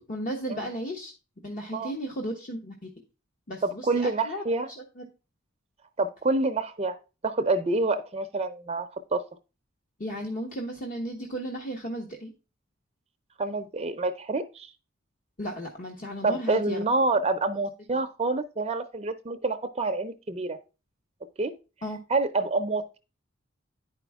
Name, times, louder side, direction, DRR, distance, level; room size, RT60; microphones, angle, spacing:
voice 1, 0.1-1.1 1.4-2.9 3.5-5.0 10.0-12.3 15.4-16.8 21.8-22.0, equal, 45° left, 1 dB, 1.2 m, -35 dB
voice 2, 3.6-4.7 6.0-7.0 7.2-9.2 13.4-14.7 16.2-20.6 21.4-21.5 22.1-23.0, right 3 dB, 30° right, 8 dB, 0.6 m, -27 dB
10.5 x 5.0 x 3.5 m, 0.31 s
head